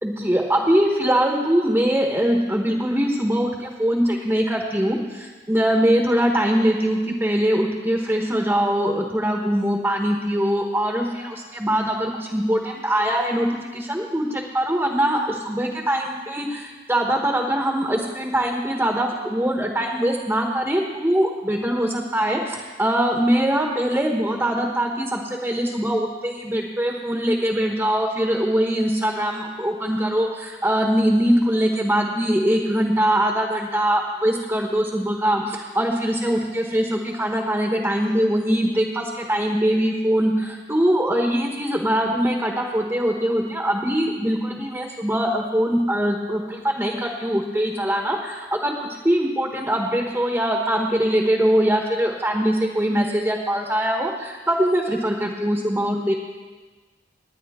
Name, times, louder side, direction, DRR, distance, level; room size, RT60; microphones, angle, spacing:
voice 1, 0.0-56.1, equal, 10° right, 0 dB, 1.1 m, -22 dB
19.5 x 9.7 x 3.6 m, 1.3 s
head